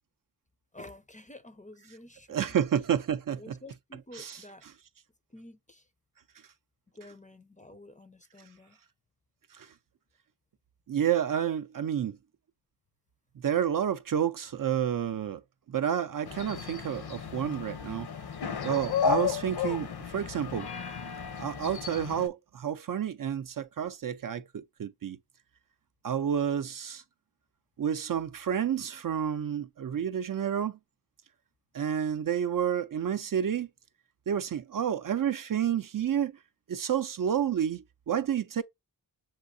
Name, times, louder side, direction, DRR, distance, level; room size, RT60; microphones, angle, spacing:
voice 1, 0.7-2.5 3.4-4.7 5.3-5.9 6.9-8.8, left 1 dB, 20° left, 0.5 m, -50 dB
voice 2, 2.3-3.5 4.1-4.4 9.6-9.7 10.9-12.2 13.4-15.4 15.7-18.1 18.6-20.7 21.4-25.2 26.0-27.0 27.8-30.8 31.7-33.7 34.3-36.3 36.7-38.6, right 9 dB, 55° right, 0.5 m, -30 dB
sound 1, 16.3-22.3, left 6 dB, 65° left, 0.8 m, -33 dB
7.3 x 2.7 x 2.5 m
wide cardioid pair, 95°, 41 cm